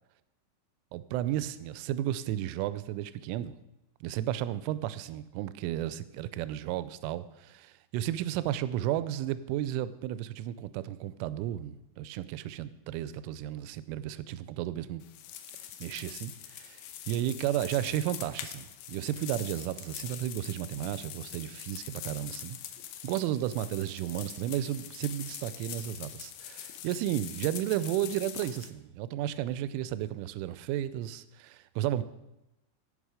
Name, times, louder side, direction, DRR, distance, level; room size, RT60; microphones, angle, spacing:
voice 1, 0.9-3.5 4.0-15.0 15.8-16.8 17.1-22.6 23.0-32.0, right 12 dB, 85° right, 14 dB, 3.0 m, -33 dB
sound 1, 15.0-28.7, left 11 dB, 85° left, 2.6 m, -43 dB
17.5 x 5.9 x 4.9 m, 0.94 s
omnidirectional pair, 5.7 m